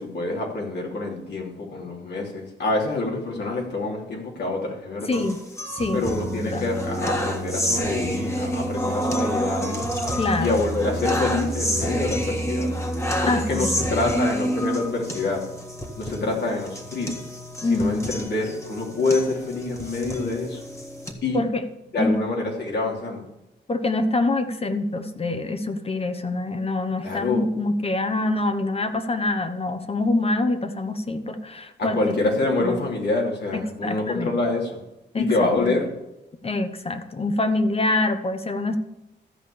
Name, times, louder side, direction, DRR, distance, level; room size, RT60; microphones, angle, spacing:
voice 1, 0.0-5.2 5.9-9.8 10.4-12.7 13.2-15.4 16.0-17.1 17.7-20.6 21.2-21.4 21.9-23.3 27.0-27.4 31.8-34.8 35.1-35.9, left 2 dB, 70° left, -1 dB, 3.1 m, -26 dB
voice 2, 5.1-5.4 5.7-6.1 6.3-6.7 10.2-10.6 13.3-13.8 17.6-18.1 21.3-21.6 22.0-22.2 23.7-32.1 32.6-32.9 33.5-34.4 35.1-35.8 36.4-38.8, left 2 dB, 35° left, 9 dB, 1.2 m, -25 dB
sound 1, 5.1-21.1, equal, 15° left, 1.7 m, -28 dB
13.5 x 5.2 x 8.7 m, 0.92 s
wide cardioid pair, 115°, 18 cm